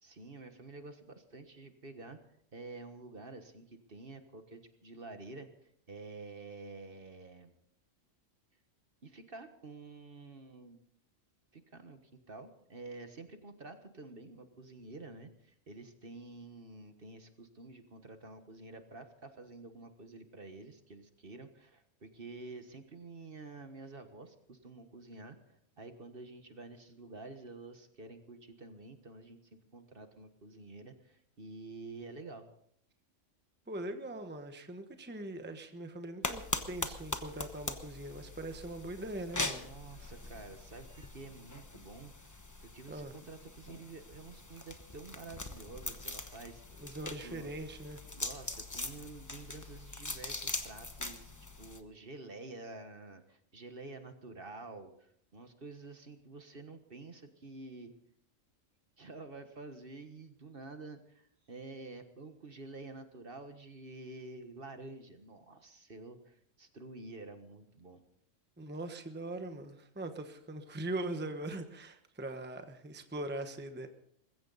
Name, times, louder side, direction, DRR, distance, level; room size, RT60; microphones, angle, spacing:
voice 1, 0.0-2.2 2.5-7.6 9.0-10.8 11.5-12.0 12.3-32.5 39.4-46.6 47.2-47.5 48.1-57.9 59.0-68.0, right 3 dB, 45° right, 7 dB, 1.6 m, -49 dB
voice 2, 33.7-39.7 42.9-43.1 46.8-48.0 68.6-73.9, right 1 dB, 10° right, 7 dB, 1.0 m, -41 dB
sound 1, 36.2-51.8, left 2 dB, 15° left, 1.0 m, -42 dB
21.0 x 15.5 x 4.1 m, 0.68 s
omnidirectional pair, 1.4 m